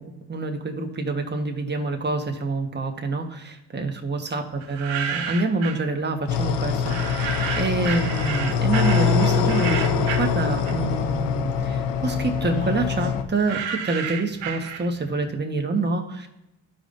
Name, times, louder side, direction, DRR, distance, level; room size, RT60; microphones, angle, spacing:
voice 1, 0.3-16.3, right 3 dB, 25° right, 3 dB, 1.4 m, -27 dB
sound 1, 4.6-5.9 6.8-11.1 11.4-15.2, right 7 dB, 80° right, 1.1 m, -32 dB
sound 2, 6.3-13.2, left 6 dB, 70° left, 0.8 m, -24 dB
13.5 x 5.0 x 2.6 m, 0.90 s
cardioid pair, 80°, 45 cm